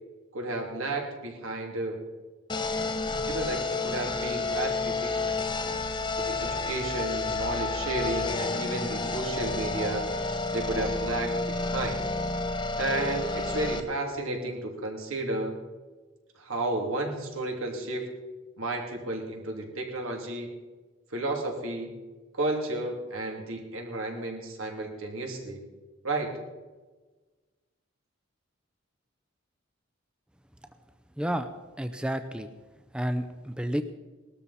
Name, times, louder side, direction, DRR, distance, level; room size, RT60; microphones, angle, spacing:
voice 1, 0.3-2.0 3.2-5.4 6.2-10.1 10.5-12.0 12.8-15.6 16.4-18.1 18.6-20.5 21.1-21.9 22.3-25.6 26.0-26.3, right 2 dB, 85° right, 2 dB, 2.9 m, -32 dB
sound 1, 2.5-13.8, left 3 dB, 20° left, 0.9 m, -30 dB
voice 2, 31.2-31.5 31.8-32.5 32.9-33.8, equal, 5° right, 9 dB, 0.5 m, -30 dB
19.5 x 13.0 x 4.2 m, 1.3 s
head